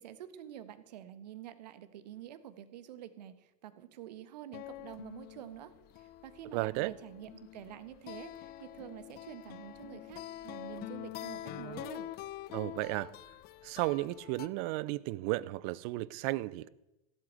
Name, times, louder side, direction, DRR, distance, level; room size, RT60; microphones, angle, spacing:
voice 1, 0.0-12.1, right 11 dB, 75° right, 1.4 m, -48 dB
sound 1, 4.5-14.5, left 14 dB, 45° left, 0.9 m, -46 dB
voice 2, 6.5-6.9 12.5-13.1 13.6-16.7, right 19 dB, 60° right, 0.7 m, -34 dB
16.0 x 8.4 x 8.8 m
hypercardioid pair, 95°, 21 cm